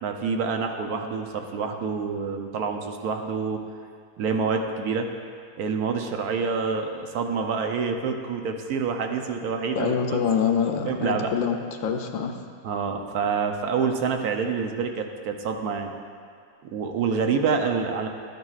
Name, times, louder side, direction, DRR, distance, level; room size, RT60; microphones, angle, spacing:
voice 1, 0.0-3.6 4.2-5.1 5.6-10.2 10.8-11.3 12.6-15.9 16.6-18.1, right 5 dB, 80° right, 4 dB, 1.2 m, -27 dB
voice 2, 9.7-12.4, left 7 dB, 70° left, 5 dB, 0.9 m, -25 dB
12.5 x 9.3 x 2.4 m, 2.2 s
omnidirectional pair, 1.6 m